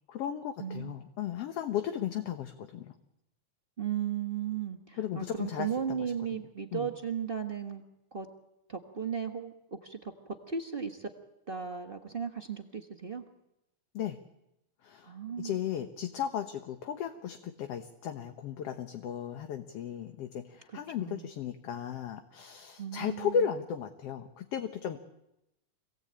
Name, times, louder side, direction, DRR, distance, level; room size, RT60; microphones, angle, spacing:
voice 1, 0.1-2.9 5.0-6.4 6.7-6.9 13.9-14.2 14.8-15.1 15.4-25.0, left 8 dB, 60° left, 7 dB, 1.9 m, -35 dB
voice 2, 0.6-0.9 3.8-7.8 8.1-8.3 8.7-11.1 11.5-13.2 15.0-15.6 20.7-21.3 22.8-23.4, right 7 dB, 50° right, 3 dB, 0.6 m, -36 dB
26.5 x 18.0 x 8.8 m, 0.88 s
omnidirectional pair, 3.5 m